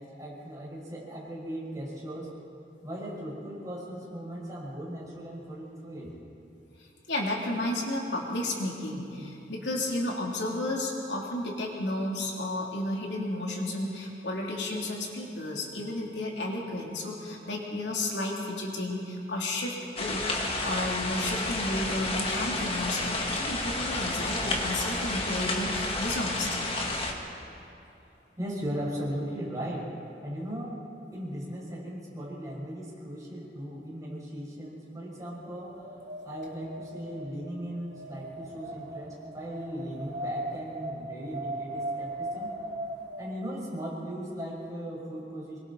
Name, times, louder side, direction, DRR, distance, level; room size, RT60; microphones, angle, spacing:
voice 1, 0.0-2.3 2.8-6.1 28.4-29.9 30.2-30.8 31.1-35.9 36.2-42.5 43.2-45.6, equal, 20° right, -5 dB, 6.0 m, -37 dB
voice 2, 7.1-20.2 20.6-26.7, left 1 dB, 85° left, -2 dB, 3.5 m, -32 dB
sound 1, 20.0-27.1, left 2 dB, 35° left, 2.0 m, -31 dB
Wind, 35.3-43.2, right 1 dB, 65° right, 3.1 m, -38 dB
26.5 x 23.0 x 4.3 m, 2.8 s
head